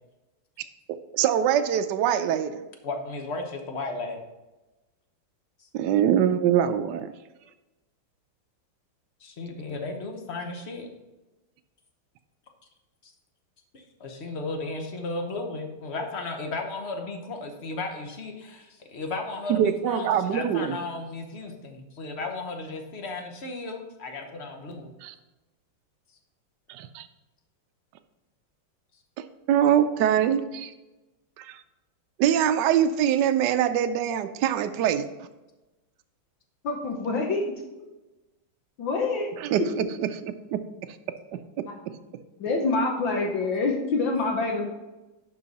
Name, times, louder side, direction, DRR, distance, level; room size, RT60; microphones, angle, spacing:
voice 1, 0.9-2.6 5.7-7.1 19.5-20.8 25.0-25.2 26.7-27.1 29.2-30.7 31.4-31.6 32.2-35.0 39.4-40.1 40.5-40.6 41.3-41.4 41.9-42.0, right 9 dB, 75° right, 8 dB, 1.0 m, -24 dB
voice 2, 2.8-4.2 9.2-10.9 13.0-13.1 13.7-24.9, left 3 dB, 45° left, 4 dB, 0.9 m, -34 dB
voice 3, 36.6-37.5 38.8-39.4 41.7-41.8 42.4-44.7, left 3 dB, 70° left, 1 dB, 1.7 m, -26 dB
11.0 x 4.7 x 4.1 m, 1.1 s
omnidirectional pair, 2.3 m